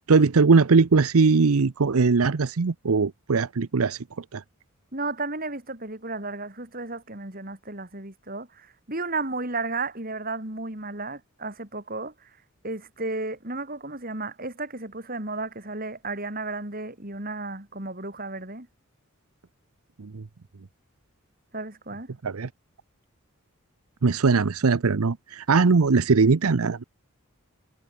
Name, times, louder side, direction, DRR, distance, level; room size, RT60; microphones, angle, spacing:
voice 1, 0.0-4.4 20.0-20.2 22.2-22.5 24.0-26.8, right 4 dB, 85° right, 0.7 m, -20 dB
voice 2, 4.9-12.3 12.6-18.7 21.5-22.1, right 3 dB, 40° right, 4.3 m, -33 dB
head